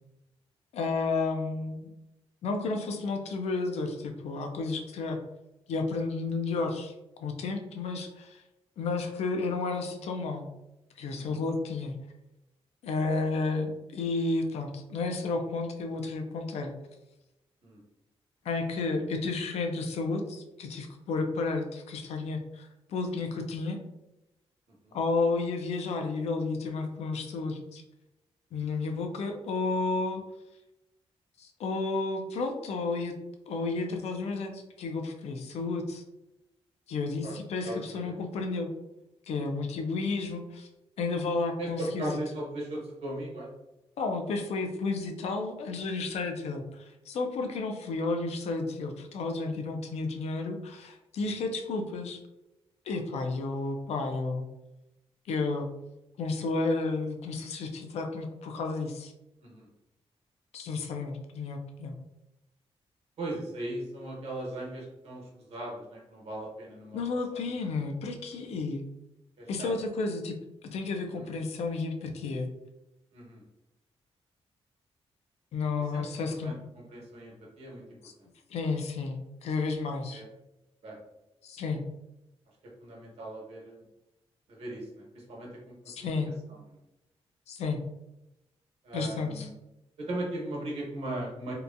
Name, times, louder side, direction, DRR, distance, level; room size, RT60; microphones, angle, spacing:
voice 1, 0.7-1.9 2.4-5.2 5.7-6.9 7.2-8.4 8.8-10.5 11.0-12.0 12.8-16.7 18.4-23.8 24.9-27.8 28.5-30.2 31.4-33.2 33.5-36.0 36.9-38.7 39.3-40.7 41.0-42.2 44.0-52.2 52.9-54.5 55.3-55.7 56.2-59.1 60.5-62.0 66.9-68.8 69.5-72.5 75.5-76.5 78.0-78.1 78.5-80.2 81.4-81.8 85.9-86.3 87.5-87.8 88.9-89.5, left 3 dB, 80° left, 4 dB, 0.4 m, -32 dB
voice 2, 24.7-25.0 37.2-37.4 37.6-38.2 41.6-43.5 51.4-51.5 59.4-59.7 63.2-67.0 67.3-67.4 69.4-69.7 71.1-71.3 73.1-73.4 75.9-76.1 76.4-78.3 80.1-80.3 80.8-81.0 82.8-83.9 84.5-86.2 86.5-86.6 88.8-89.5 90.0-91.5, right 1 dB, 70° right, -3 dB, 1.0 m, -38 dB
2.8 x 2.2 x 2.5 m, 0.93 s
wide cardioid pair, 125°, 11 cm